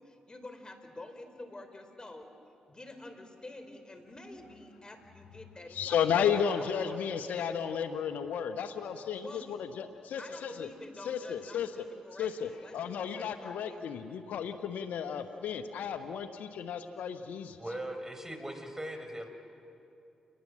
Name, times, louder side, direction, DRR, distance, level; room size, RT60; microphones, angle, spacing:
voice 1, 0.0-2.3 2.7-7.0 7.3-7.5 9.2-9.7 10.2-13.9, left 2 dB, 30° left, 6 dB, 4.5 m, -48 dB
voice 2, 5.7-10.7 11.0-11.8 12.2-17.6, left 7 dB, 80° left, 8 dB, 1.1 m, -33 dB
voice 3, 17.6-19.3, right 1 dB, 15° right, 6 dB, 4.6 m, -39 dB
29.5 x 21.0 x 7.5 m, 2.7 s
supercardioid pair, 45°, 3 cm